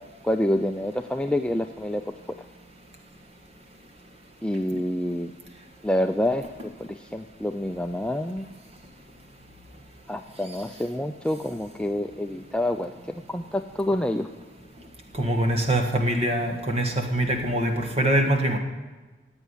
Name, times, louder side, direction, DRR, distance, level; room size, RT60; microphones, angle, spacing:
voice 1, 0.2-2.0 2.3-2.4 4.4-5.3 5.8-8.5 10.1-12.9 13.3-14.3, left 1 dB, 5° left, 5 dB, 0.4 m, -27 dB
voice 2, 15.1-18.6, right 1 dB, 30° right, 4 dB, 1.6 m, -23 dB
16.0 x 8.3 x 9.8 m, 1.2 s
head